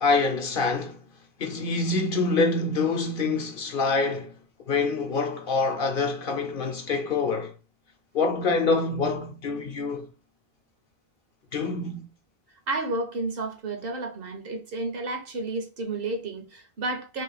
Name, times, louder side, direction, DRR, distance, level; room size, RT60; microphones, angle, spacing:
voice 1, 0.0-1.0 1.4-4.3 4.7-7.5 8.1-10.1 11.5-12.1, left 3 dB, 65° left, 0.8 m, -26 dB
voice 2, 12.7-17.2, right 2 dB, 65° right, 1.0 m, -31 dB
2.9 x 2.7 x 4.0 m
omnidirectional pair, 1.0 m